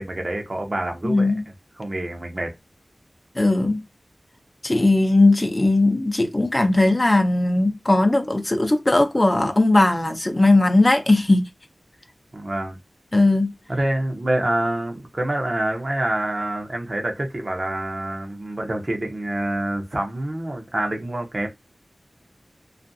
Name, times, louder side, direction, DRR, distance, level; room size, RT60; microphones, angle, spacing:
voice 1, 0.0-1.4 1.8-2.5 12.3-12.8 13.7-21.5, right 1 dB, 45° right, 0.7 m, -26 dB
voice 2, 1.0-1.4 3.4-3.8 4.6-11.5 13.1-13.5, left 2 dB, 30° left, 0.6 m, -18 dB
2.5 x 2.4 x 2.6 m
wide cardioid pair, 50°, 0 cm